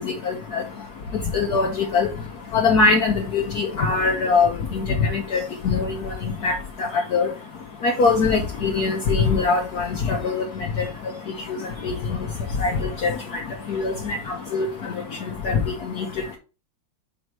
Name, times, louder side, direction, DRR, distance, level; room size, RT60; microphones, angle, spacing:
voice 1, 0.0-16.4, left 4 dB, 60° left, 1 dB, 1.4 m, -24 dB
5.4 x 4.6 x 4.7 m, 0.32 s
omnidirectional pair, 2.1 m